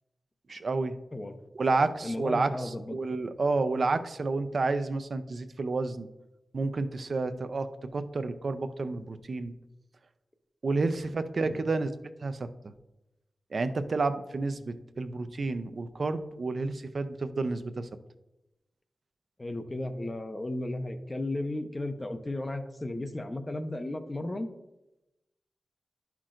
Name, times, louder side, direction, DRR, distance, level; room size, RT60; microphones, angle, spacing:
voice 1, 0.5-0.9 1.6-6.1 6.5-7.7 7.9-9.5 10.6-11.9 12.2-12.5 13.5-17.9, right 3 dB, 55° right, 10 dB, 0.5 m, -30 dB
voice 2, 2.0-3.0 11.4-11.6 19.4-24.5, left 1 dB, 25° left, 7 dB, 0.6 m, -34 dB
11.5 x 5.9 x 2.5 m, 0.96 s
wide cardioid pair, 110°, 0 cm